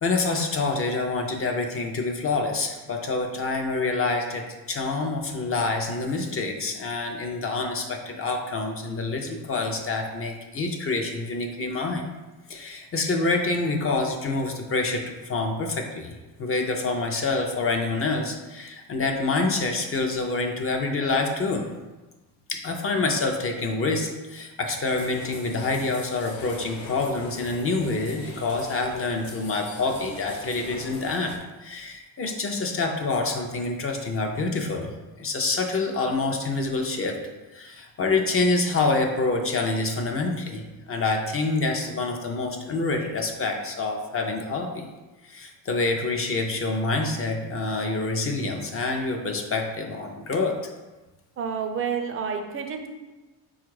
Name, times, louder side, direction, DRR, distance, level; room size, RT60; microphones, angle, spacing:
voice 1, 0.0-12.0 12.5-21.7 22.5-34.9 35.2-37.2 37.5-44.9 45.2-50.6, left 3 dB, 35° left, 3 dB, 0.4 m, -27 dB
sound 1, 24.9-31.4, left 3 dB, 50° left, 0.8 m, -41 dB
voice 2, 51.4-52.9, right 6 dB, 30° right, 5 dB, 0.4 m, -29 dB
4.4 x 2.4 x 4.6 m, 1.1 s
cardioid pair, 135°, 43 cm